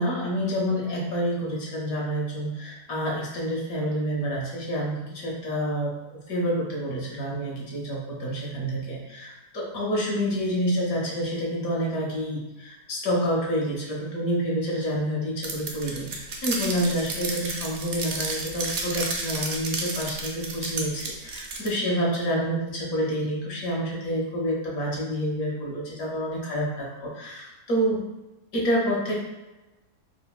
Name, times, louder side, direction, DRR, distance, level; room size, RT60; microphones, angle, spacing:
voice 1, 0.0-28.0 28.5-29.1, equal, 65° left, -4 dB, 1.2 m, -28 dB
sound 1, 15.4-21.7, right 3 dB, 70° right, 0.6 m, -32 dB
3.2 x 2.8 x 2.2 m, 1.0 s
omnidirectional pair, 1.7 m